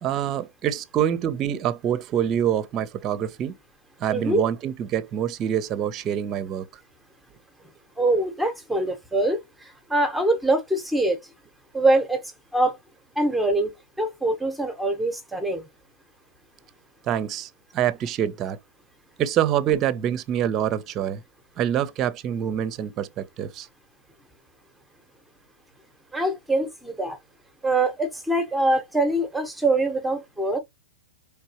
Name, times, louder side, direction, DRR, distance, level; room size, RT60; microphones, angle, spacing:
voice 1, 0.0-3.6 4.0-6.7 17.0-18.6 19.2-21.2 21.6-23.7, right 10 dB, 30° right, 0.7 m, -26 dB
voice 2, 4.1-4.4 8.0-11.2 11.7-12.2 12.5-12.8 13.2-13.7 14.0-15.7 26.1-27.2 27.6-30.6, right 2 dB, 5° right, 1.0 m, -23 dB
4.5 x 3.3 x 2.9 m
hypercardioid pair, 130°, 0 cm